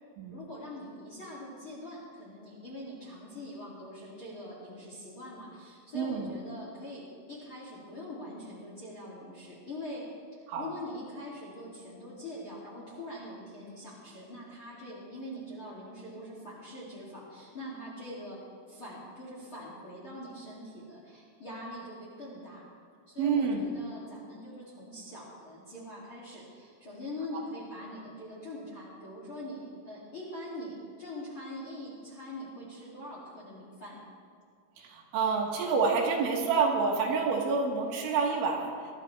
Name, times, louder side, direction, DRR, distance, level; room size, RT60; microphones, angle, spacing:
voice 1, 0.3-10.0 10.6-22.7 23.1-34.0, left 1 dB, 35° left, -6 dB, 2.2 m, -43 dB
voice 2, 5.9-6.3 10.5-10.7 23.2-23.7 34.8-38.7, right 4 dB, 75° right, 0 dB, 3.7 m, -28 dB
22.5 x 12.5 x 3.3 m, 2.2 s
omnidirectional pair, 5.9 m